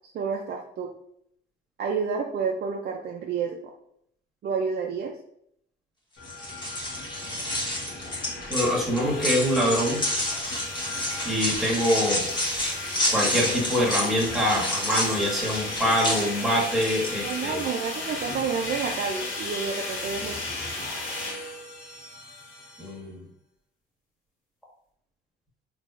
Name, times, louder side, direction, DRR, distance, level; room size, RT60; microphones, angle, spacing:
voice 1, 0.1-0.9 1.8-3.6 4.4-5.1 17.2-20.4, right 5 dB, 55° right, 1 dB, 0.4 m, -29 dB
sound 1, 6.2-22.9, left 2 dB, 80° left, 1.3 m, -35 dB
sound 2, 6.2-17.4, left 1 dB, 20° left, 1.1 m, -30 dB
voice 2, 8.5-10.0 11.2-12.2 13.1-17.6 22.8-23.2, equal, ahead, -5 dB, 1.5 m, -25 dB
3.8 x 3.0 x 2.4 m, 0.71 s
cardioid pair, 90°, 20 cm